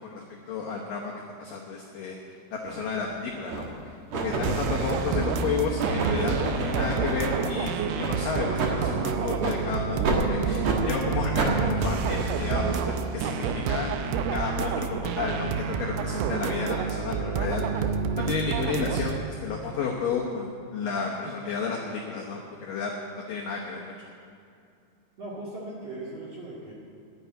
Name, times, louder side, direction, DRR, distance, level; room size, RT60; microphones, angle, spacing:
voice 1, 0.1-1.1 1.4-4.0 4.2-17.9 18.1-23.9, left 5 dB, 90° left, -2 dB, 1.9 m, -32 dB
sound 1, 2.6-2.8 3.5-3.8 4.1-7.5 8.0-8.1 8.6-8.7 9.4-9.6 10.0-10.2 10.6-10.8 11.4-11.5, right 3 dB, 75° right, 1.6 m, -29 dB
voice 2, 4.3-4.7 25.2-26.7, right 2 dB, 45° right, -6 dB, 2.2 m, -38 dB
sound 2, 4.4-19.2, right 6 dB, 90° right, 3.3 m, -28 dB
11.5 x 8.5 x 9.2 m, 2.4 s
omnidirectional pair, 5.6 m